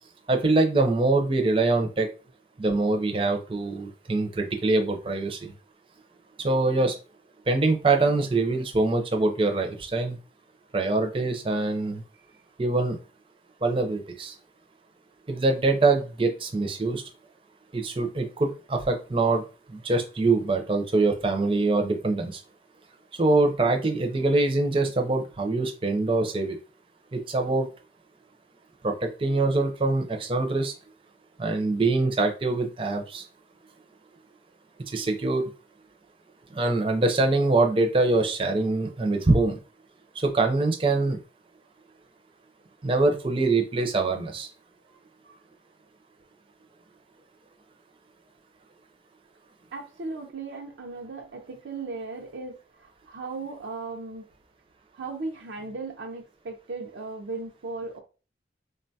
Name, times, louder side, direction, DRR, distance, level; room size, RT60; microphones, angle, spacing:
voice 1, 0.3-2.1 2.6-5.5 6.4-7.0 7.5-10.2 10.7-12.0 12.6-13.0 13.6-14.3 15.3-17.0 17.7-19.4 19.7-22.4 23.2-26.6 27.1-27.7 28.8-30.7 31.4-33.2 34.9-35.5 36.5-39.6 40.2-41.2 42.8-44.5, right 3 dB, 30° right, 4 dB, 0.5 m, -24 dB
voice 2, 49.7-54.2 54.9-58.0, right 3 dB, 80° right, 2 dB, 0.5 m, -37 dB
3.7 x 2.2 x 2.7 m, 0.32 s
head